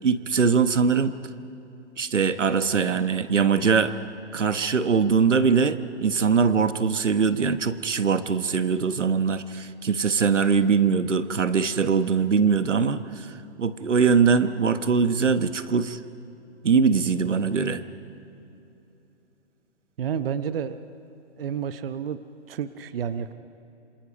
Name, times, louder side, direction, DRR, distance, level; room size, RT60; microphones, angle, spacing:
voice 1, 0.0-1.1 2.0-4.0 4.3-16.0 16.6-17.8, right 5 dB, 85° right, 12 dB, 1.2 m, -22 dB
voice 2, 20.0-20.8 21.4-22.2 22.5-23.3, right 8 dB, 55° right, 12 dB, 0.9 m, -30 dB
27.5 x 27.0 x 5.3 m, 2.9 s
hypercardioid pair, 140°, 35 cm